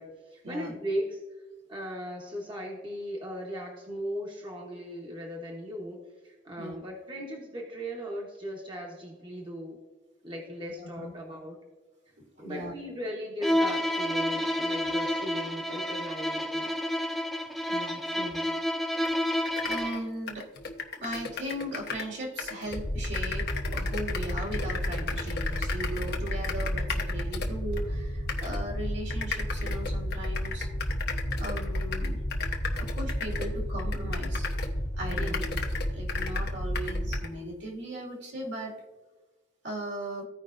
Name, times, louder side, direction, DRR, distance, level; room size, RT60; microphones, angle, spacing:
voice 1, 0.0-1.4 1.7-6.0 6.2-9.8 10.2-11.6 12.4-16.7 35.1-35.6, equal, 25° right, -2 dB, 1.1 m, -37 dB
voice 2, 10.8-11.1 12.4-12.7 17.7-18.5 19.3-19.4 19.6-20.5 21.0-30.7 31.4-32.2 32.8-34.5 35.0-35.4 35.9-38.7 39.6-40.2, right 1 dB, 65° right, -1 dB, 2.2 m, -38 dB
Bowed string instrument, 13.4-20.1, left 1 dB, ahead, 0.4 m, -29 dB
sound 1, 19.0-19.1 19.4-22.1 22.4-27.8 28.3-28.6 29.1-34.8 35.1-37.3, left 5 dB, 55° left, 1.0 m, -36 dB
sound 2, 22.7-37.2, equal, 80° left, 1.7 m, -32 dB
15.5 x 5.1 x 2.5 m, 1.2 s
head